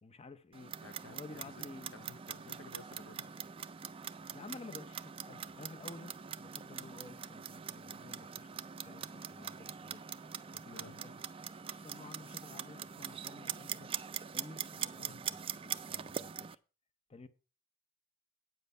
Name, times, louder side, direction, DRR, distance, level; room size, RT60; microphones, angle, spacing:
voice 1, 0.0-0.8 1.1-2.0 4.3-10.0 10.5-13.9 14.3-16.6 17.1-17.3, left 3 dB, 30° left, 0.6 m, -53 dB
Clock, 0.5-16.6, right 8 dB, 25° right, 0.4 m, -43 dB
voice 2, 0.8-1.6 1.9-3.3 10.7-11.0 15.0-15.3, left 4 dB, 75° left, 0.6 m, -54 dB
9.1 x 7.4 x 5.4 m
head